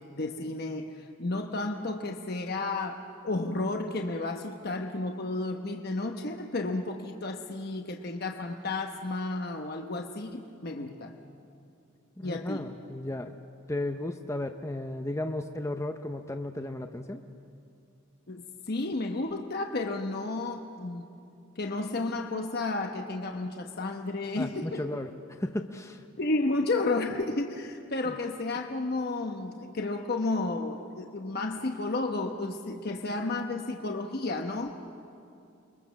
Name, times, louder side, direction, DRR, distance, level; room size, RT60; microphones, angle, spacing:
voice 1, 0.0-11.2 12.2-12.7 18.3-21.1 21.6-24.8 26.2-34.7, left 2 dB, 50° left, 4 dB, 1.1 m, -32 dB
voice 2, 12.2-13.3 13.7-17.2 24.4-26.0, left 1 dB, 15° left, 6 dB, 0.7 m, -34 dB
29.0 x 22.5 x 7.1 m, 2.6 s
head